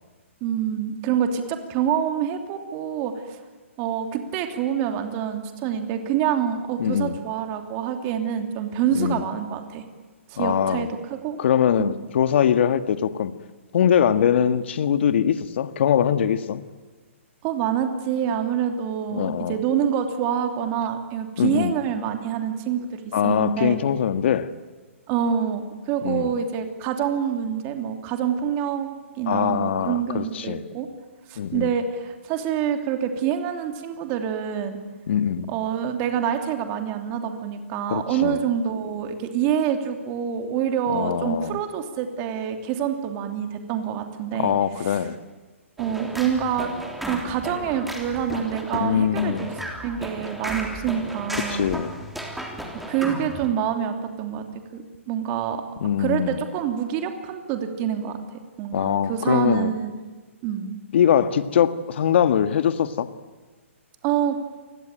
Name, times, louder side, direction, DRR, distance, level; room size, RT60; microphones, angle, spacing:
voice 1, 0.4-3.4 3.8-9.8 10.3-10.9 11.2-11.4 11.8-11.9 17.4-23.8 25.1-28.9 29.2-30.9 31.3-34.8 35.5-44.5 44.8-45.0 45.8-46.7 47.0-49.5 49.8-51.7 52.9-54.4 54.7-55.6 56.0-58.2 58.6-59.9 60.4-60.8 64.0-64.4, right 8 dB, 30° right, 6 dB, 3.1 m, -26 dB
voice 2, 6.8-7.2 8.9-9.2 10.4-10.9 11.4-13.3 13.7-16.6 19.1-19.6 21.4-21.7 23.1-24.5 26.0-26.3 29.3-30.6 31.4-31.7 35.1-35.5 37.9-38.4 40.9-41.6 44.4-45.2 48.7-49.5 51.5-51.9 55.8-56.4 58.7-59.7 60.9-63.1, left 9 dB, 55° left, 11 dB, 1.8 m, -22 dB
sound 1, 45.8-53.5, equal, ahead, 3.4 m, -34 dB
29.0 x 21.0 x 9.1 m, 1.4 s
hypercardioid pair, 145°, 7 cm